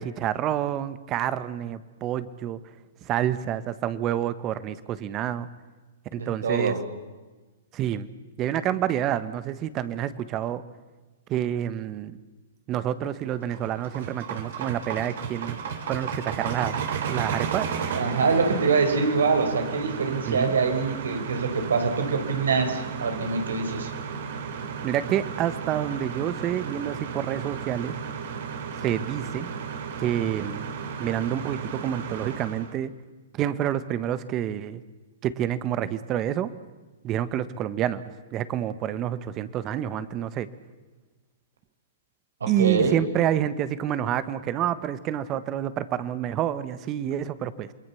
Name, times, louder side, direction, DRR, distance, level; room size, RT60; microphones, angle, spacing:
voice 1, 0.0-2.6 3.0-5.5 6.1-6.8 7.7-8.1 8.4-10.6 11.3-12.2 12.7-15.6 15.9-16.8 17.1-17.7 20.3-20.5 24.8-28.0 28.8-29.5 30.0-30.7 31.0-32.9 33.3-34.8 35.2-36.5 37.0-38.0 38.3-40.5 42.5-47.7, right 11 dB, 30° right, 14 dB, 1.4 m, -28 dB
voice 2, 6.1-6.8 17.9-23.9 42.4-43.0, right 4 dB, 85° right, 7 dB, 4.5 m, -24 dB
sound 1, 13.3-32.7, right 6 dB, 60° right, 3.2 m, -34 dB
28.0 x 21.5 x 7.2 m, 1.2 s
hypercardioid pair, 140°, 0 cm